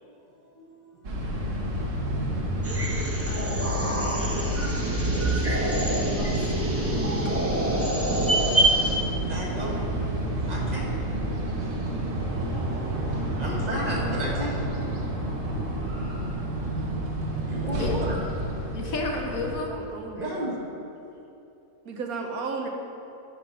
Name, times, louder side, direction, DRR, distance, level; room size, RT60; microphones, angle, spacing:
voice 1, 0.0-1.6 9.3-10.1 10.5-11.4 11.7-11.8 12.7-14.9 15.5-15.7 16.2-18.2 18.9-19.0 20.1-20.8, right 1 dB, 30° right, -4 dB, 1.6 m, -36 dB
sound 1, 1.0-19.5, right 1 dB, 60° right, 1.5 m, -29 dB
sound 2, 2.6-9.0, right 1 dB, 10° right, 0.7 m, -26 dB
voice 2, 3.3-7.1 11.3-11.4 17.8-17.9 18.7-19.8, left 4 dB, 70° left, 1 dB, 1.4 m, -35 dB
voice 3, 6.7-7.7 19.3-20.3 21.8-22.7, right 4 dB, 80° right, 3 dB, 1.4 m, -35 dB
9.2 x 5.8 x 5.7 m, 2.9 s
omnidirectional pair, 1.5 m